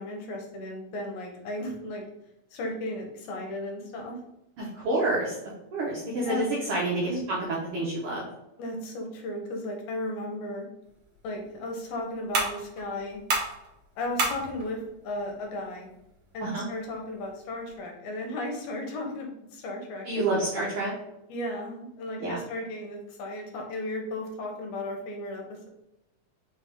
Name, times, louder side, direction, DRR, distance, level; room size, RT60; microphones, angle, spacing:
voice 1, 0.0-2.0 2.5-4.2 6.2-6.5 7.0-7.2 8.6-10.7 11.2-13.2 14.0-15.9 16.3-20.4 21.3-25.7, left 1 dB, 75° left, 1 dB, 2.1 m, -35 dB
voice 2, 4.6-7.4 7.7-8.2 16.4-16.6 20.1-20.9 22.2-22.4, right 2 dB, 70° right, -5 dB, 1.4 m, -28 dB
sound 1, 10.8-17.8, right 3 dB, 90° right, 1.0 m, -35 dB
4.6 x 3.3 x 3.4 m, 0.87 s
omnidirectional pair, 3.4 m